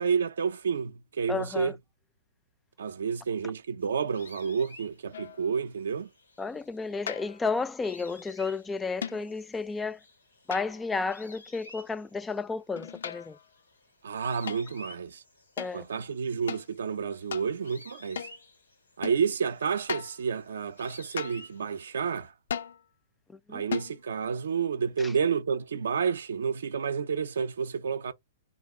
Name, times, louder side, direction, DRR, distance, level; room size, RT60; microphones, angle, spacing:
voice 1, 0.0-1.7 2.8-6.1 14.0-15.2 15.7-18.3 19.0-22.3 23.5-28.1, right 6 dB, 75° right, 0.4 m, -30 dB
voice 2, 1.3-1.7 6.4-10.0 10.5-13.4 15.6-15.9 23.5-23.6 25.0-25.1, left 4 dB, 10° left, 0.3 m, -32 dB
sound 1, 3.8-22.3, left 1 dB, 90° left, 2.5 m, -54 dB
sound 2, 5.1-5.5 7.1-7.5 9.0-9.4 10.5-11.0 12.8-13.5 14.5-14.7 15.6-15.8 16.5-16.7 17.3-17.5 18.2-18.4 19.0-19.2 19.9-20.2 21.2-21.5 22.5-22.8 23.7-24.0, left 7 dB, 70° left, 0.5 m, -37 dB
3.7 x 2.3 x 3.7 m
hypercardioid pair, 115°, 0 cm